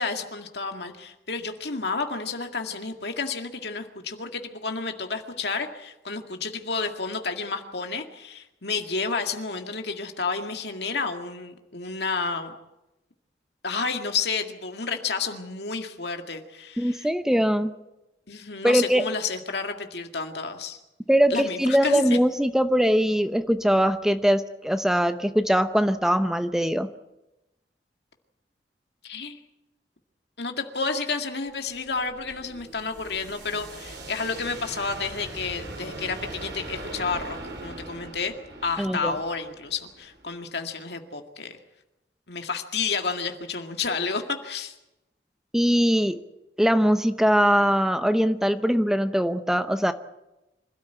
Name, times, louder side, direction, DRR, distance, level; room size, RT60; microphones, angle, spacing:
voice 1, 0.0-12.5 13.6-17.1 18.3-20.8 21.3-22.0 29.0-29.4 30.4-38.3 38.6-41.6 42.3-44.7, left 4 dB, 65° left, 5 dB, 2.0 m, -31 dB
voice 2, 16.8-17.7 18.6-19.0 21.1-26.9 38.8-39.2 45.5-46.2 46.6-49.9, equal, 5° right, 10 dB, 0.8 m, -21 dB
sound 1, 31.5-40.4, right 2 dB, 75° right, 4.8 m, -41 dB
26.0 x 13.0 x 9.1 m, 0.96 s
head